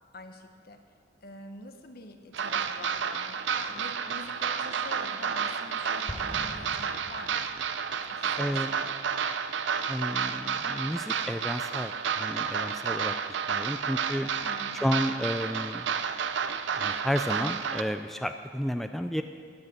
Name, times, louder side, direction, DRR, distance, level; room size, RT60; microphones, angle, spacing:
voice 1, 0.1-0.8 1.2-7.4 8.1-8.8 14.4-14.9, left 2 dB, 55° left, 6 dB, 1.1 m, -46 dB
sound 1, 2.3-17.8, right 6 dB, 85° right, 0.6 m, -31 dB
Explosion, 6.1-7.9, left 1 dB, 20° left, 1.0 m, -42 dB
voice 2, 8.4-8.7 9.9-13.1 13.5-14.3 14.8-15.9 16.8-19.2, equal, ahead, 7 dB, 0.3 m, -31 dB
15.0 x 6.2 x 9.2 m, 2.1 s
head